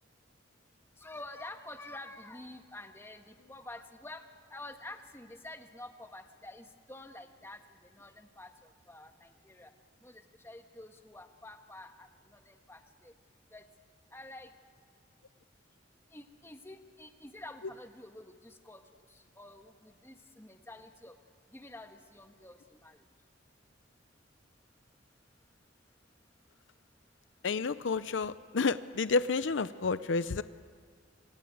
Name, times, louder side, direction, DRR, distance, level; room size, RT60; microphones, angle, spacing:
voice 1, 1.0-4.2 4.5-9.7 10.0-13.1 13.5-13.7 14.1-14.5 16.1-21.2 21.5-23.1, left 2 dB, 15° left, 6 dB, 1.4 m, -49 dB
voice 2, 27.4-30.4, left 4 dB, 70° left, 14 dB, 0.6 m, -30 dB
26.5 x 23.0 x 9.4 m, 2.1 s
head